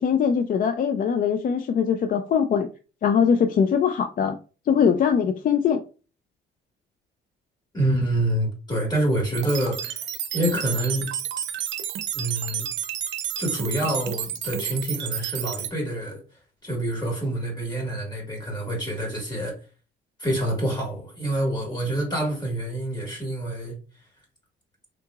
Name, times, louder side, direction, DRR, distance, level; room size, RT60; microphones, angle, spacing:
voice 1, 0.0-2.7 3.0-4.4 4.7-5.8, left 7 dB, 45° left, 0.4 m, -21 dB
voice 2, 7.7-11.1 12.1-12.7 13.4-16.2 16.6-19.6 20.2-23.8, right 1 dB, 20° left, 1.7 m, -27 dB
sound 1, 9.3-15.7, right 10 dB, 70° right, 0.6 m, -31 dB
3.7 x 2.8 x 2.3 m
cardioid pair, 90°, 20 cm